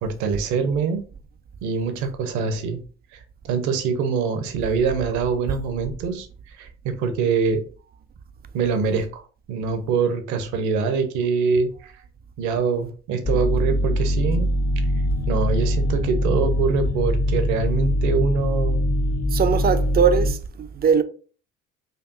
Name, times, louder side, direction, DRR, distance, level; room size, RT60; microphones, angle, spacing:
voice 1, 0.0-1.0 1.6-2.8 3.4-7.6 8.5-9.2 9.5-11.9 12.4-14.5 15.3-18.8, right 5 dB, 60° right, 0.8 m, -24 dB
sound 1, 13.2-20.3, equal, 30° left, 0.5 m, -22 dB
voice 2, 19.3-21.0, right 6 dB, 30° right, 0.5 m, -20 dB
4.5 x 2.6 x 2.5 m
figure-of-eight pair, 55°, 34 cm